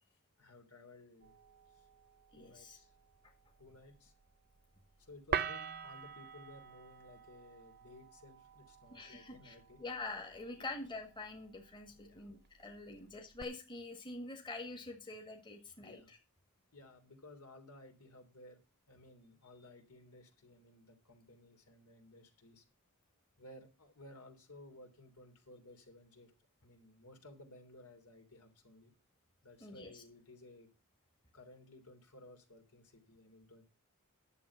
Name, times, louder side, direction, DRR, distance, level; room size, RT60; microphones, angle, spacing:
voice 1, 0.4-1.4 1.6-1.9 2.3-2.9 3.6-4.1 5.0-9.8 10.6-10.7 11.9-12.3 12.9-13.1 15.8-16.1 16.7-18.6 18.9-22.6 23.4-26.3 26.6-28.9 29.4-30.7 31.3-33.6, left 2 dB, 80° left, 5 dB, 3.2 m, -57 dB
sound 1, 1.2-13.4, right 7 dB, 45° right, 0.7 m, -46 dB
voice 2, 2.3-2.8 8.9-16.2 29.6-30.0, left 2 dB, 20° left, 3 dB, 1.6 m, -46 dB
11.0 x 7.2 x 5.6 m, 0.30 s
head